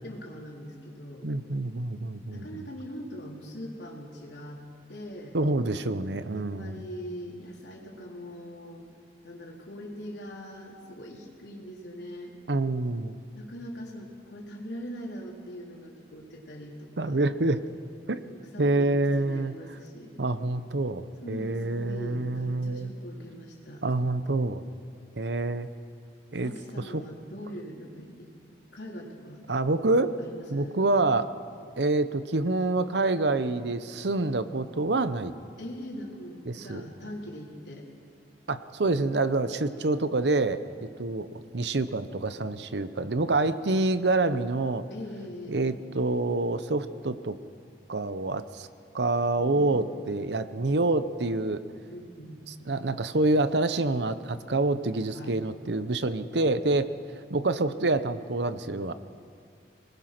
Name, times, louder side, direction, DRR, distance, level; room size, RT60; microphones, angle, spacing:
voice 1, 0.0-1.3 2.3-4.6 4.9-5.4 6.3-8.9 9.2-12.4 13.3-17.2 18.1-20.1 21.2-23.8 26.4-28.3 28.7-29.4 30.2-30.8 35.6-37.9 44.9-45.7 49.3-50.0 51.9-52.4 55.1-55.4, equal, 85° left, -1 dB, 3.7 m, -42 dB
voice 2, 1.2-2.4 5.3-6.8 12.5-13.2 17.0-17.6 18.1-18.2 18.6-19.5 20.2-22.9 23.8-24.6 25.2-25.7 26.3-26.5 26.9-27.0 29.5-30.2 30.5-31.3 31.8-35.3 36.5-36.8 38.5-44.8 45.5-47.4 47.9-48.7 48.9-51.6 52.7-56.9 57.3-58.9, right 2 dB, 80° right, 12 dB, 0.9 m, -27 dB
24.0 x 20.0 x 6.0 m, 2.3 s
head